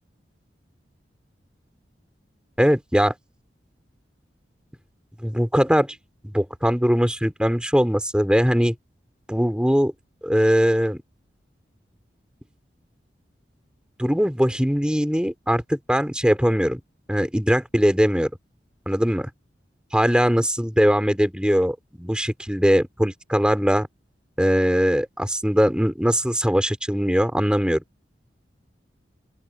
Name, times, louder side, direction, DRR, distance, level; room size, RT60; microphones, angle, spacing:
voice 1, 2.6-3.1 5.2-6.0 6.2-8.8 9.3-9.9 10.2-11.0 14.0-16.8 17.1-18.3 18.9-19.3 19.9-23.9 24.4-27.8, equal, 5° right, 3.5 m, -21 dB
open air
head